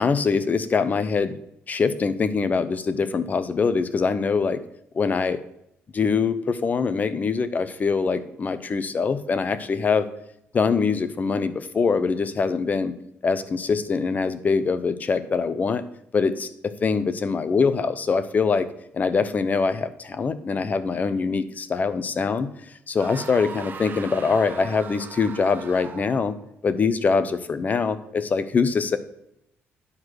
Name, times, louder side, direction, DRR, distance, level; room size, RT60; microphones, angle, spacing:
voice 1, 0.0-1.4 1.7-4.6 4.9-5.4 5.9-10.0 10.5-12.9 13.2-15.8 16.1-18.7 18.9-22.5 22.9-26.4 26.6-29.0, left 5 dB, 35° left, 13 dB, 0.7 m, -23 dB
sound 1, 23.0-26.3, right 6 dB, 45° right, 0.9 m, -39 dB
9.7 x 4.7 x 6.3 m, 0.80 s
cardioid pair, 105°, 5 cm